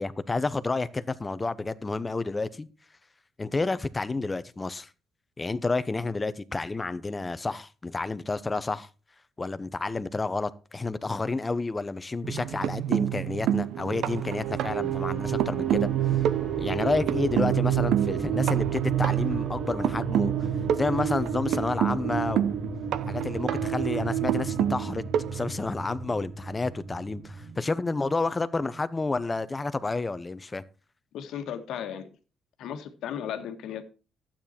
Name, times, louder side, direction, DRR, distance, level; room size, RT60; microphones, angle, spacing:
voice 1, 0.0-2.7 3.4-4.9 5.4-8.9 9.4-16.2 16.6-20.5 20.8-22.6 23.1-25.0 25.3-30.6, left 3 dB, 25° left, 0.8 m, -30 dB
sound 1, 12.2-26.2 27.5-27.6 27.9-28.1, right 11 dB, 80° right, 0.6 m, -28 dB
sound 2, 14.2-27.5, equal, 5° left, 2.4 m, -38 dB
voice 2, 31.1-32.1 32.6-33.8, left 9 dB, 80° left, 1.4 m, -35 dB
12.0 x 8.9 x 4.3 m
cardioid pair, 90°, 0 cm